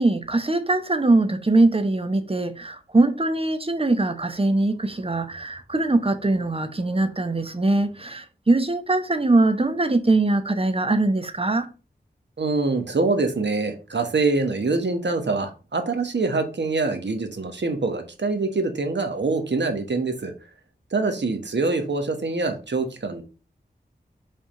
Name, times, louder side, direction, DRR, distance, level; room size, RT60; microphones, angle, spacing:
voice 1, 0.0-11.7, right 2 dB, 30° right, 1.0 m, -22 dB
voice 2, 12.4-20.3 20.9-23.2, right 3 dB, 80° right, 1.2 m, -24 dB
5.6 x 3.5 x 5.6 m
wide cardioid pair, 55°, 18 cm